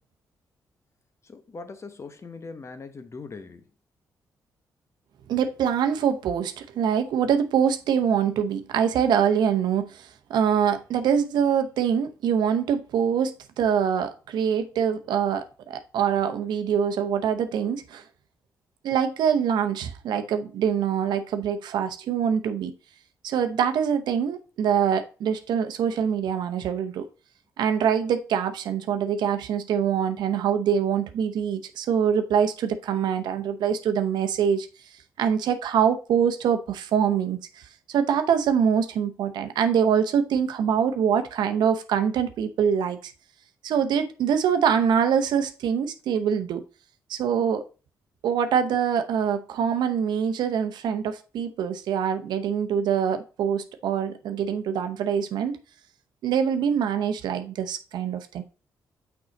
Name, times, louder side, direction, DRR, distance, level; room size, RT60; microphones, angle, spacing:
voice 1, 1.2-3.7, left 4 dB, 40° left, 1.0 m, -41 dB
voice 2, 5.3-13.3 13.6-18.0 18.8-22.7 23.2-27.1 27.6-34.7 35.2-37.4 37.9-43.1 43.6-46.6 47.1-47.6 48.2-55.6 56.2-58.4, right 8 dB, 80° right, 0.8 m, -24 dB
6.3 x 4.7 x 4.0 m
supercardioid pair, 60°, 7 cm